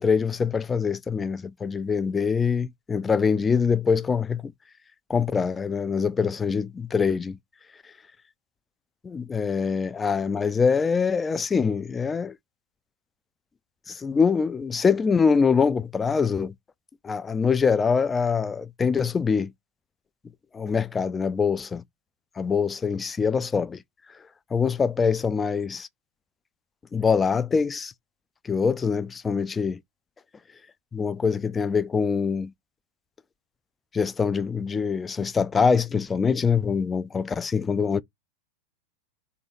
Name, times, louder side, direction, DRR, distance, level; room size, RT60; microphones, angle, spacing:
voice 1, 0.0-4.5 5.1-7.4 9.0-12.3 13.9-16.5 17.0-19.5 20.5-21.8 22.4-23.8 24.5-25.9 26.9-27.9 28.5-29.8 30.9-32.5 33.9-38.0, left 5 dB, 15° left, 0.3 m, -24 dB
3.0 x 2.7 x 4.0 m
figure-of-eight pair, 90°, 0 cm